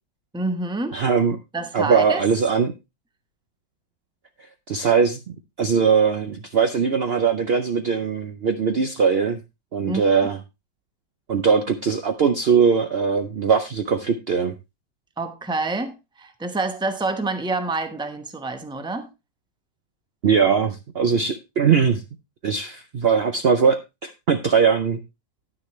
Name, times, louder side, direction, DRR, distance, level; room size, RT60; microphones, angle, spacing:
voice 1, 0.3-1.0 1.5-2.2 9.9-10.0 15.2-19.1, right 3 dB, 5° right, 0.6 m, -27 dB
voice 2, 0.9-1.4 1.7-2.7 4.7-9.4 9.7-10.4 11.3-14.5 20.2-22.0 22.4-25.0, right 6 dB, 75° right, 0.5 m, -20 dB
10.0 x 9.9 x 3.1 m
omnidirectional pair, 2.0 m